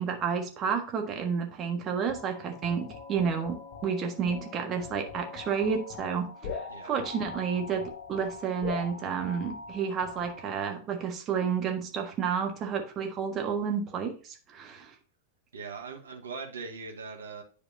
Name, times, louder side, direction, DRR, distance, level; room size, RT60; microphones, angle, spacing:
voice 1, 0.0-3.6 3.8-14.9, right 6 dB, 30° right, 3 dB, 1.5 m, -31 dB
sound 1, 2.1-10.8, left 4 dB, 40° left, 3.1 m, -42 dB
voice 2, 15.5-17.4, right 4 dB, 70° right, 3 dB, 1.3 m, -40 dB
10.0 x 5.1 x 2.6 m, 0.39 s
figure-of-eight pair, 90°, 0 cm